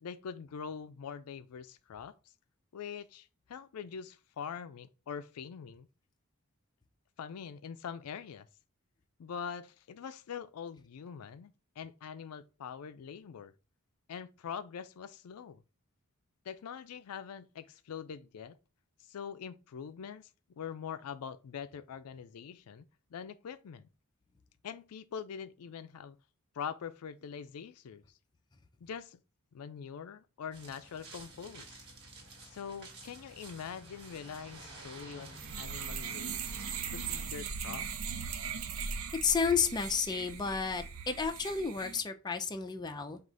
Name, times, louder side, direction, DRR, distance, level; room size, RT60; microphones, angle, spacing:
voice 1, 0.0-2.1 2.7-5.9 7.2-8.5 9.2-13.5 14.1-15.6 16.5-18.6 19.0-20.3 20.6-23.9 24.6-26.2 26.6-28.0 28.8-29.2 29.5-31.8 32.4-36.4 36.9-37.9, left 7 dB, 85° left, 0.4 m, -43 dB
sound 1, 30.5-37.3, right 2 dB, 50° right, 1.4 m, -51 dB
sound 2, 35.4-42.0, right 6 dB, 70° right, 0.5 m, -39 dB
voice 2, 39.2-43.2, left 5 dB, 20° left, 0.4 m, -31 dB
4.7 x 2.4 x 3.8 m
head